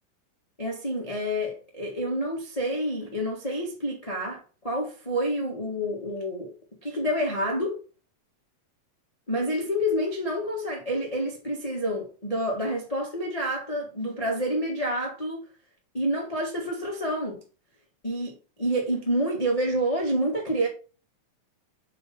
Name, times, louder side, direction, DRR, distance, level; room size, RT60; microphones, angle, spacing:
voice 1, 0.6-6.5 6.8-7.8 9.3-15.4 15.9-17.4 18.0-20.7, equal, 85° left, 0.3 m, -28 dB
6.7 x 4.2 x 5.2 m
omnidirectional pair, 4.1 m